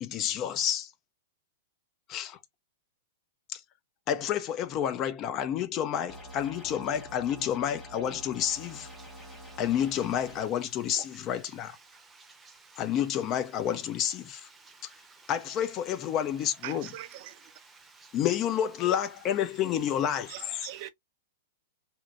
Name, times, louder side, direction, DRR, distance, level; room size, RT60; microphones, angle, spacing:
voice 1, 0.0-0.9 2.1-2.4 3.5-3.6 4.1-8.9 9.6-11.8 12.8-14.5 15.3-16.9 18.1-20.6, left 10 dB, 35° left, 0.5 m, -29 dB
sound 1, 6.1-10.5, right 1 dB, 5° left, 1.2 m, -47 dB
voice 2, 9.0-9.6 11.0-11.1 11.9-12.8 14.5-15.3 17.5-18.2, right 3 dB, 15° right, 0.7 m, -54 dB
voice 3, 16.6-17.5 20.3-20.9, right 14 dB, 50° right, 0.3 m, -42 dB
2.9 x 2.1 x 2.5 m
hypercardioid pair, 110°, 0 cm